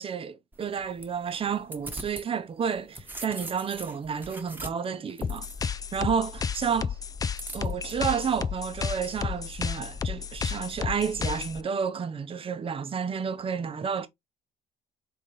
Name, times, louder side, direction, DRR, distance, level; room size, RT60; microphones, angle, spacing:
voice 1, 0.0-5.5 5.9-7.0 7.5-14.1, right 7 dB, 35° right, 0.8 m, -31 dB
sound 1, 0.5-2.3 2.7-6.0 7.4-7.9, right 2 dB, 10° right, 1.2 m, -41 dB
sound 2, 5.2-11.6, left 6 dB, 20° left, 0.3 m, -32 dB
3.9 x 3.9 x 3.1 m
cardioid pair, 110°, 17 cm